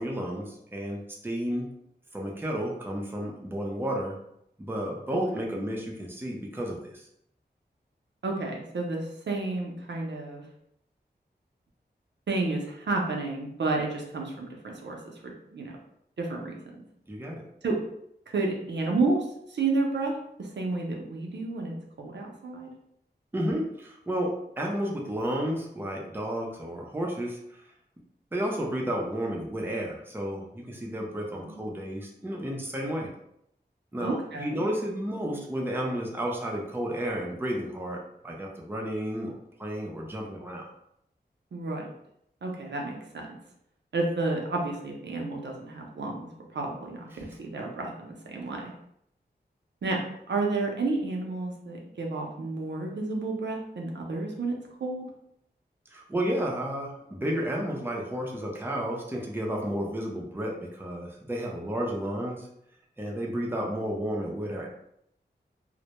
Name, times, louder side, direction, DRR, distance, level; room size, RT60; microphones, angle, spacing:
voice 1, 0.0-1.7 2.1-4.1 4.6-7.1 17.1-17.4 23.3-27.6 28.3-33.1 33.9-40.6 55.9-62.5 63.0-64.7, equal, 10° right, -1 dB, 0.5 m, -32 dB
voice 2, 8.2-10.4 12.3-15.7 16.2-16.6 17.6-17.8 18.3-20.1 20.4-22.7 31.4-31.7 34.0-34.6 41.5-41.9 42.4-43.4 43.9-48.7 49.8-50.0 50.3-55.1, right 3 dB, 80° right, 0 dB, 0.5 m, -31 dB
2.1 x 2.0 x 2.8 m, 0.75 s
wide cardioid pair, 80°, 18 cm